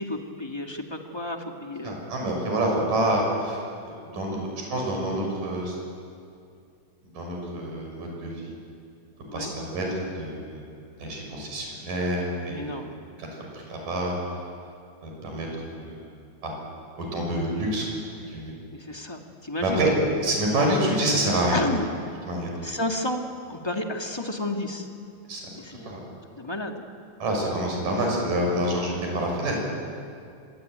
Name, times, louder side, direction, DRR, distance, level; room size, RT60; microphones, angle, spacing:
voice 1, 0.0-1.9 4.1-4.4 9.3-9.5 12.5-12.9 18.7-19.8 21.5-21.9 22.6-23.2 23.5-24.9 25.6-25.9 26.3-26.8, left 1 dB, 15° left, 3 dB, 1.0 m, -32 dB
voice 2, 1.8-5.8 7.1-8.6 9.3-10.6 11.0-12.7 13.2-13.3 13.5-14.2 15.0-16.1 16.4-16.5 17.0-17.9 18.3-18.5 19.6-19.9 20.2-21.6 22.3-22.5 25.3-25.5 25.9-26.0 27.2-29.6, right 1 dB, 90° right, 0 dB, 8.0 m, -27 dB
25.0 x 22.5 x 9.3 m, 2.4 s
omnidirectional pair, 3.7 m